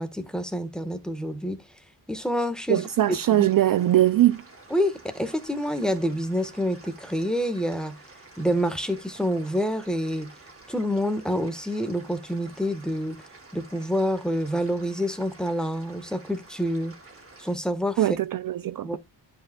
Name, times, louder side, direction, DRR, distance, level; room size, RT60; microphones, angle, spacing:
voice 1, 0.0-1.6 2.1-2.8 3.1-3.5 4.7-7.9 8.4-10.3 10.7-13.2 13.5-16.9 17.4-18.0 18.8-19.0, equal, ahead, 1.3 m, -27 dB
sound 1, 2.7-17.5, right 2 dB, 30° right, 3.1 m, -50 dB
voice 2, 2.7-4.4 18.0-19.0, right 13 dB, 55° right, 0.4 m, -21 dB
12.5 x 5.1 x 2.2 m
wide cardioid pair, 105°, 42 cm